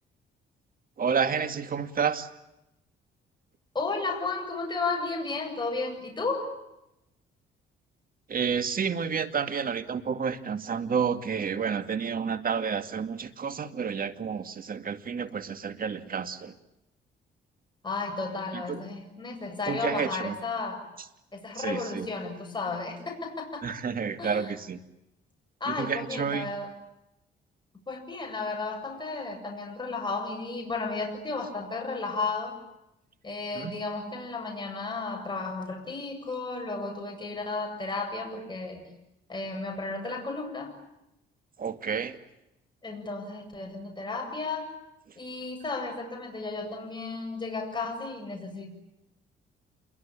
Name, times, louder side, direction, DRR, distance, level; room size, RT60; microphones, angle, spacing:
voice 1, 1.0-2.3 8.3-16.5 18.5-18.9 19.7-20.4 21.5-22.1 23.6-24.8 25.7-26.5 33.5-33.7 41.6-42.2, right 6 dB, 45° right, 9 dB, 2.3 m, -30 dB
voice 2, 3.7-6.6 17.8-20.9 21.3-23.7 24.2-24.5 25.6-26.7 27.9-32.6 33.2-38.8 39.3-40.8 42.8-44.7 45.2-48.7, left 3 dB, 25° left, 2 dB, 8.0 m, -33 dB
28.0 x 23.0 x 8.8 m, 0.88 s
cardioid pair, 90°, 20 cm